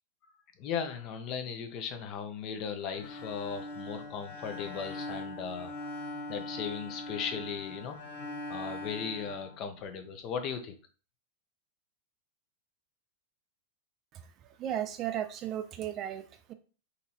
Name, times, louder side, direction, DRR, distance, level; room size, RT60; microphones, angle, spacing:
voice 1, 0.6-6.0 6.3-8.0 8.5-10.8, left 7 dB, 35° left, 7 dB, 0.6 m, -37 dB
Bowed string instrument, 2.9-10.1, left 1 dB, 85° left, 1.2 m, -41 dB
voice 2, 14.6-16.5, right 11 dB, 30° right, 9 dB, 0.3 m, -35 dB
3.9 x 3.0 x 2.7 m, 0.38 s
supercardioid pair, 155°, 0 cm